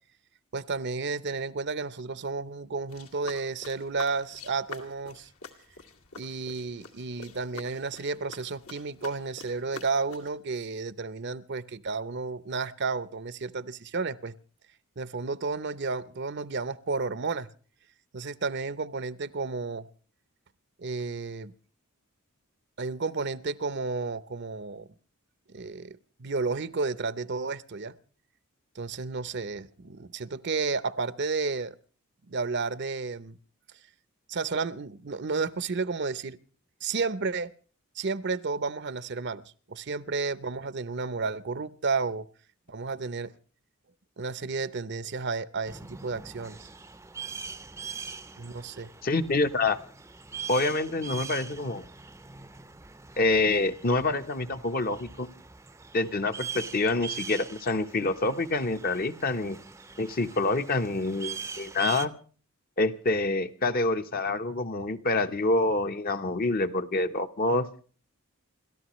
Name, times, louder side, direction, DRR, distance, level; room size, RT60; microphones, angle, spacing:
voice 1, 0.5-5.3 6.2-14.3 15.0-17.5 18.1-19.9 20.8-21.5 22.8-24.9 25.5-27.9 28.7-31.7 32.3-33.4 34.3-36.4 36.8-37.5 38.0-42.3 42.7-43.3 44.2-46.7 48.4-48.9, right 4 dB, 50° right, 17 dB, 0.7 m, -32 dB
sound 1, 2.9-10.4, left 5 dB, 75° left, 2.3 m, -47 dB
sound 2, 45.6-62.1, right 6 dB, 10° right, 0.6 m, -42 dB
voice 2, 49.0-49.8 50.5-51.9 53.2-55.3 55.9-59.6 60.0-62.1 62.8-67.7, left 2 dB, 40° left, 8 dB, 1.0 m, -27 dB
28.5 x 13.5 x 3.1 m, 0.40 s
head